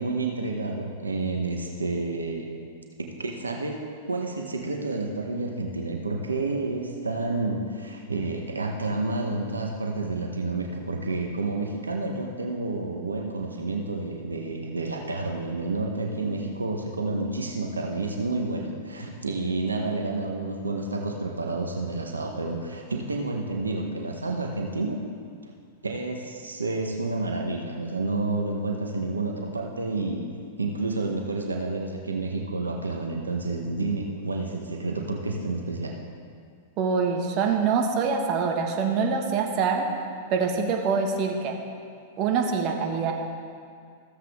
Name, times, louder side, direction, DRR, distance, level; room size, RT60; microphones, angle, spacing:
voice 1, 0.0-2.5 3.0-3.8 4.1-25.0 25.4-25.5 25.8-30.3 30.6-35.9, right 3 dB, 90° right, 2 dB, 0.9 m, -30 dB
voice 2, 36.8-39.9 40.3-41.6 42.2-43.1, right 5 dB, 40° right, 2 dB, 1.4 m, -25 dB
14.5 x 7.5 x 3.5 m, 2.3 s
hypercardioid pair, 105°, 0 cm